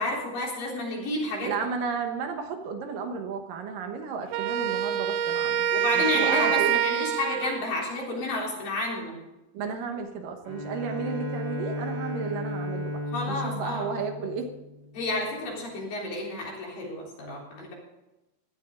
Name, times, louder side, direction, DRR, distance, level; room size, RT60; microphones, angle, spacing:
voice 1, 0.0-1.5 5.7-9.2 13.1-14.0 14.9-17.7, left 2 dB, 65° left, -3 dB, 5.4 m, -31 dB
voice 2, 1.4-5.7 5.9-6.8 9.5-13.0 13.3-14.5, right 5 dB, 70° right, 5 dB, 2.7 m, -33 dB
Wind instrument woodwind instrument, 4.3-7.7, right 10 dB, 90° right, 2.6 m, -26 dB
Bowed string instrument, 10.4-15.1, left 1 dB, 35° right, 1.0 m, -34 dB
17.0 x 12.0 x 3.8 m, 0.98 s
omnidirectional pair, 4.2 m